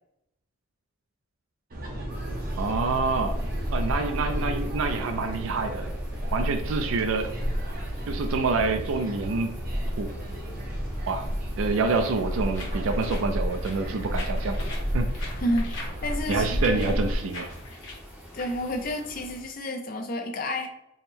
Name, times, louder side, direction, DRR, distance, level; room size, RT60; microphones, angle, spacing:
sound 1, 1.7-17.2, equal, 45° right, 0.7 m, -31 dB
sound 2, 2.1-19.4, equal, 10° right, 0.7 m, -46 dB
voice 1, 2.6-3.4 3.7-5.9 6.3-7.3 8.1-9.5 10.0-10.1 11.1-11.3 11.6-14.6 14.9-15.1 16.3-17.5, right 4 dB, 80° right, 6 dB, 0.4 m, -27 dB
sound 3, 12.5-19.5, left 2 dB, 65° left, 1.3 m, -42 dB
voice 2, 15.4-17.0 18.3-20.7, left 1 dB, 45° left, 3 dB, 0.5 m, -30 dB
3.4 x 2.1 x 4.3 m, 0.81 s
head